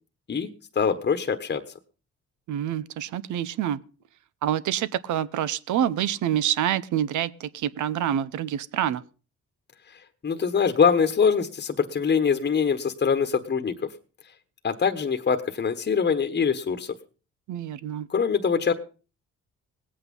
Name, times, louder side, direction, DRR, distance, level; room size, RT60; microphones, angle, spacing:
voice 1, 0.7-1.6 10.2-13.9 14.6-16.9 18.1-18.7, left 6 dB, 35° left, 7 dB, 1.3 m, -23 dB
voice 2, 2.5-3.8 4.4-9.0 17.5-18.1, right 10 dB, 75° right, 17 dB, 0.8 m, -27 dB
18.5 x 8.6 x 5.4 m, 0.37 s
cardioid pair, 90°, 30 cm